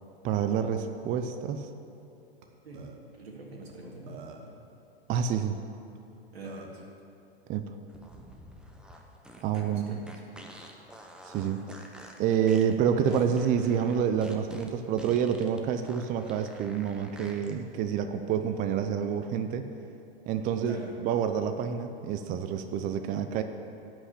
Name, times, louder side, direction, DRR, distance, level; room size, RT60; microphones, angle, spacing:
voice 1, 0.2-1.7 5.1-5.5 7.5-7.7 9.4-10.0 11.3-11.6 12.2-19.7 20.3-20.8 21.0-23.4, right 8 dB, 25° right, 8 dB, 0.5 m, -28 dB
Burping eructation, 2.4-2.5 2.7-2.9 3.7-3.8 4.1-4.6 6.0-6.1 6.4-6.8, right 5 dB, 55° right, 1.3 m, -47 dB
voice 2, 3.1-4.5 6.3-6.8 9.5-10.2 13.1-13.3 20.5-20.9, right 2 dB, 85° right, -2 dB, 2.5 m, -44 dB
sound 1, 7.9-17.5, right 1 dB, 5° right, 0.9 m, -48 dB
11.0 x 5.9 x 8.5 m, 2.8 s
hypercardioid pair, 110°, 30 cm